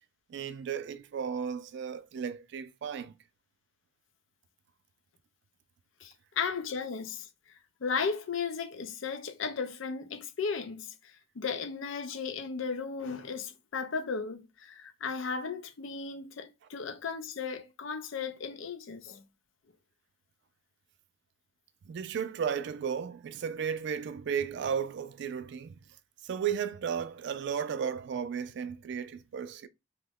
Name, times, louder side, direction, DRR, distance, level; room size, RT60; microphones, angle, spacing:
voice 1, 0.3-3.1 21.9-25.8 26.2-29.7, right 7 dB, 60° right, 0.3 m, -34 dB
voice 2, 6.0-7.3 7.8-19.2, left 5 dB, 80° left, 0.5 m, -35 dB
2.9 x 2.2 x 3.5 m
head